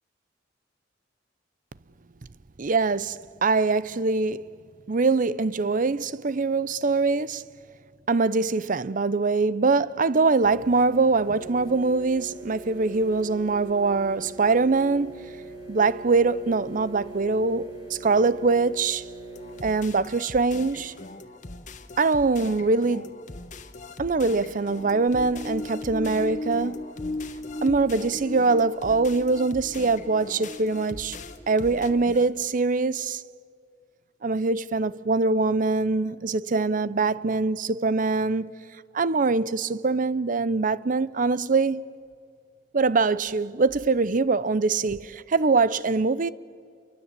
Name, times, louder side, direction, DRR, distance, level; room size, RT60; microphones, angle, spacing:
voice 1, 2.6-4.5 4.9-7.4 8.1-15.3 15.7-19.0 19.6-20.9 22.0-23.1 24.0-26.8 27.6-31.2 31.5-33.2 34.2-38.5 38.9-41.8 42.7-46.3, right 3 dB, 45° right, 0.6 m, -23 dB
sound 1, 10.4-19.6, right 2 dB, 70° right, 5.9 m, -42 dB
sound 2, 19.3-32.3, left 2 dB, 45° left, 1.5 m, -42 dB
sound 3, 24.6-32.2, left 2 dB, 20° left, 1.0 m, -37 dB
30.0 x 24.0 x 8.3 m
head